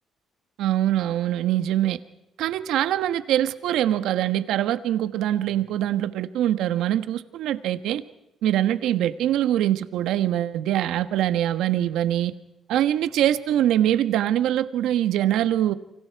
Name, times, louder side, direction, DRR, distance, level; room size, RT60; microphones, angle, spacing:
voice 1, 0.6-2.0 2.4-8.0 8.4-12.3 12.7-15.7, right 12 dB, 85° right, 11 dB, 1.2 m, -23 dB
29.5 x 25.0 x 4.7 m, 0.90 s
cardioid pair, 90°, 0 cm